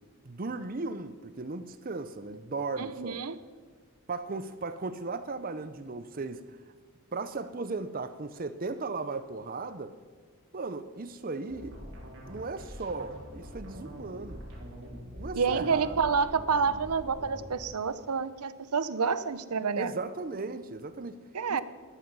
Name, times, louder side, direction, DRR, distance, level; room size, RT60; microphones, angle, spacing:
voice 1, 0.2-3.2 4.1-6.4 7.1-9.9 10.5-11.8 12.3-14.4 15.2-16.0 19.8-21.2 21.5-21.6, right 3 dB, 40° right, 0.6 m, -36 dB
voice 2, 2.8-3.4 15.3-19.9 21.3-21.6, right 5 dB, 90° right, 0.7 m, -28 dB
sound 1, 11.5-17.6, equal, 55° right, 4.1 m, -44 dB
13.5 x 12.5 x 5.5 m
head